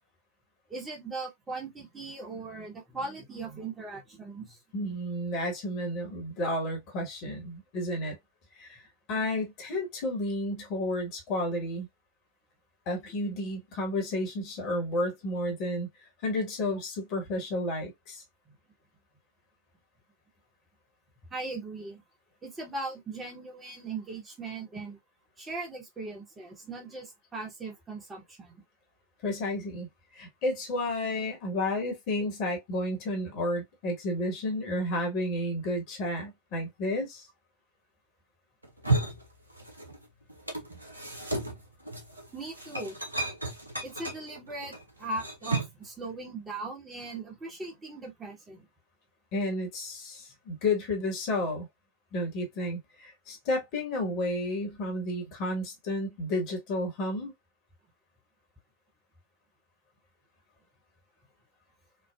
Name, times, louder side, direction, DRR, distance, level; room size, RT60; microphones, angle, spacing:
voice 1, 0.7-4.6 18.5-18.6 21.3-22.0 22.4-25.0 25.4-28.6 42.3-43.0 43.8-48.7, right 3 dB, 15° right, 0.9 m, -39 dB
voice 2, 4.7-8.2 8.5-11.9 12.9-15.9 16.2-18.2 29.2-29.9 30.1-37.3 49.3-51.7 52.1-57.3, left 1 dB, 40° left, 1.1 m, -31 dB
sound 1, 38.6-40.0 40.3-45.9, right 2 dB, 85° right, 0.6 m, -33 dB
3.2 x 2.1 x 2.2 m
figure-of-eight pair, 90°, 0 cm